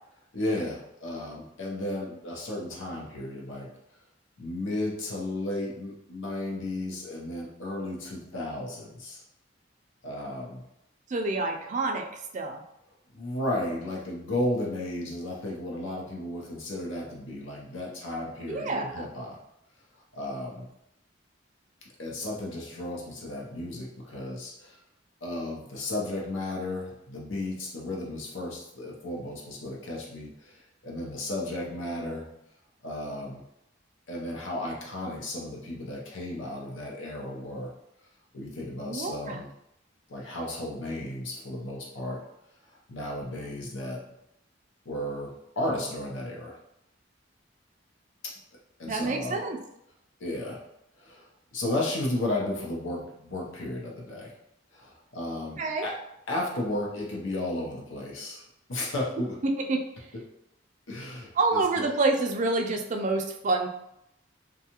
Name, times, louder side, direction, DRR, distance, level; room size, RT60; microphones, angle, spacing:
voice 1, 0.3-3.7 4.4-9.2 10.0-10.6 13.1-19.4 20.1-20.7 22.0-24.8 25.2-32.3 32.8-33.4 34.1-37.7 38.3-39.5 40.1-42.2 42.7-44.0 44.8-46.6 48.2-48.3 48.8-49.4 50.2-50.6 51.0-54.3 54.7-56.0 56.3-58.4 58.7-59.4 60.9-61.9, left 1 dB, 80° left, -2 dB, 0.7 m, -34 dB
voice 2, 11.1-12.6 18.5-19.1 38.9-39.4 48.8-49.6 55.6-55.9 59.4-59.8 61.4-63.7, right 3 dB, 40° right, 3 dB, 0.3 m, -27 dB
2.6 x 2.3 x 2.8 m, 0.80 s
head